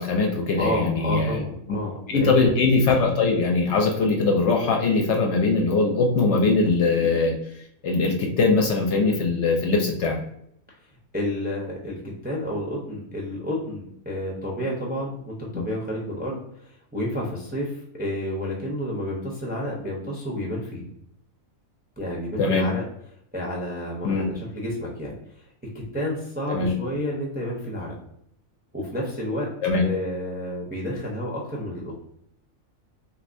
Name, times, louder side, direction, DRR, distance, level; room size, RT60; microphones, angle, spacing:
voice 1, 0.0-1.4 1.7-1.8 2.1-7.3 7.8-10.2 22.4-22.7 24.0-24.3 26.5-26.7 29.6-29.8, left 3 dB, 65° left, 2 dB, 0.8 m, -21 dB
voice 2, 0.6-2.5 10.7-10.8 11.1-20.9 22.0-22.8 23.3-25.1 25.7-27.9 28.7-29.5 29.8-31.9, equal, 10° right, -3 dB, 0.4 m, -30 dB
3.4 x 2.8 x 2.5 m, 0.72 s
omnidirectional pair, 1.4 m